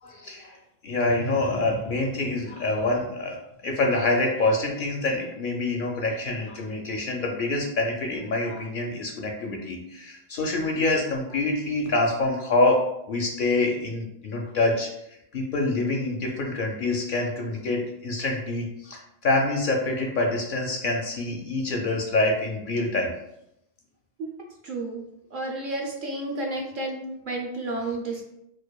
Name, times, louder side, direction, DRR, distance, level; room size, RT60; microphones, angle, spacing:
voice 1, 0.0-3.4 3.6-23.1, left 2 dB, 60° left, 1 dB, 0.6 m, -26 dB
voice 2, 24.6-25.0 25.3-28.2, right 2 dB, 60° right, 0 dB, 0.7 m, -31 dB
4.5 x 2.3 x 2.2 m, 0.80 s
omnidirectional pair, 1.1 m